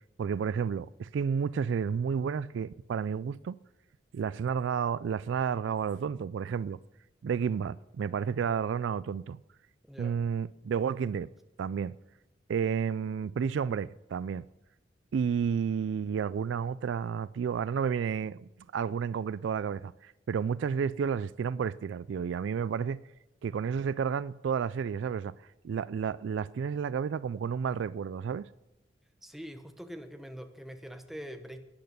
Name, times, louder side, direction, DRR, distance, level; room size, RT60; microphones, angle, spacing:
voice 1, 0.2-3.6 4.1-6.8 7.2-9.4 10.0-11.3 11.6-12.0 12.5-14.5 15.1-23.0 23.4-25.3 25.6-28.5, right 6 dB, 70° right, 0.3 m, -31 dB
voice 2, 9.9-10.2 29.2-31.6, equal, ahead, 0.9 m, -44 dB
12.0 x 9.2 x 6.7 m
head